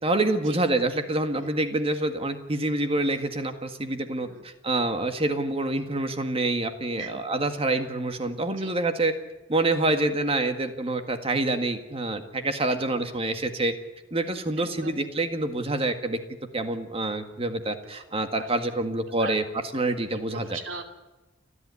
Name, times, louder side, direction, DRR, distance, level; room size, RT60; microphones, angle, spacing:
voice 1, 0.0-9.1 9.5-13.7 14.1-16.2 16.5-19.4 19.7-20.6, right 2 dB, 30° right, 7 dB, 1.9 m, -27 dB
voice 2, 4.1-4.5 7.0-7.1 8.6-8.7 12.7-13.0 14.6-15.0 17.9-18.7 19.2-19.4 20.3-20.8, right 4 dB, 90° right, 6 dB, 2.8 m, -41 dB
29.5 x 11.5 x 9.8 m, 1.1 s
head